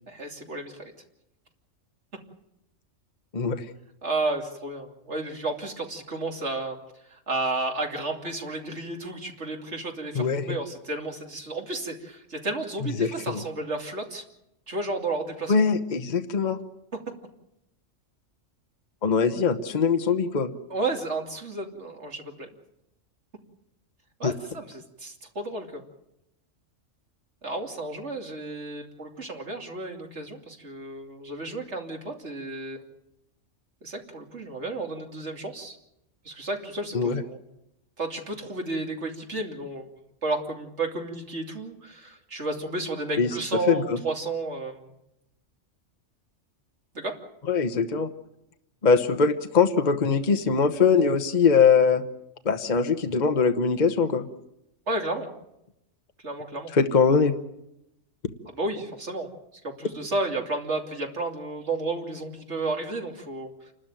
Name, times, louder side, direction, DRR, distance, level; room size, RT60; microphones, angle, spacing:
voice 1, 0.1-0.9 4.0-6.8 7.0-14.2 14.7-15.5 20.7-22.5 24.2-25.8 27.4-32.8 33.8-35.8 36.2-37.4 38.0-39.8 40.2-44.9 46.9-47.1 54.9-55.3 56.2-56.7 58.6-63.7, right 2 dB, 65° right, 2 dB, 3.1 m, -32 dB
voice 2, 3.3-3.7 10.1-10.6 12.8-13.4 15.5-16.6 19.0-20.6 24.2-24.3 36.9-37.2 43.2-43.3 43.7-44.0 47.5-48.1 48.8-52.0 52.4-54.3 56.7-57.3, left 5 dB, 40° left, 7 dB, 1.1 m, -22 dB
28.5 x 13.0 x 9.1 m, 0.86 s
omnidirectional pair, 1.3 m